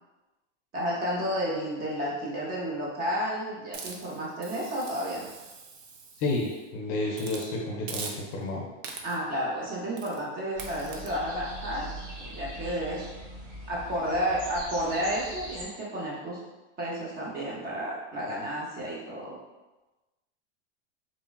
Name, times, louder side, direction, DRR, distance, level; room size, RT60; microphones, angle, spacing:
voice 1, 0.7-5.3 9.0-11.9 12.2-13.1 13.7-16.4 16.8-19.4, equal, 25° right, -5 dB, 0.7 m, -31 dB
Hiss, 3.7-6.6 7.1-7.5 7.9-8.5 8.8-9.3 10.0-10.2 10.6-11.1, right 5 dB, 60° right, 0.5 m, -42 dB
voice 2, 6.2-8.7, left 2 dB, 40° left, -2 dB, 0.5 m, -31 dB
sound 1, 10.5-15.7, right 1 dB, 85° right, 1.1 m, -41 dB
3.0 x 2.2 x 2.3 m, 1.1 s
hypercardioid pair, 115°, 36 cm